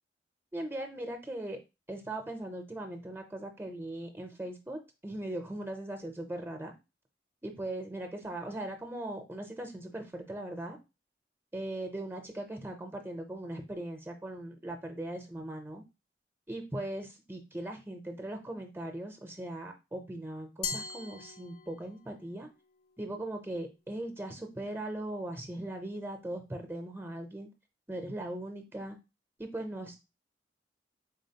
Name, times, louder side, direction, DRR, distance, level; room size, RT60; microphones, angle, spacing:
voice 1, 0.5-1.6 1.9-6.7 7.4-10.8 11.5-15.8 16.5-22.5 23.0-27.5 27.9-29.0 29.4-29.9, right 1 dB, 15° right, 5 dB, 0.5 m, -39 dB
Glass, 20.6-22.1, left 5 dB, 55° left, 0.4 m, -39 dB
3.8 x 3.7 x 2.8 m, 0.26 s
head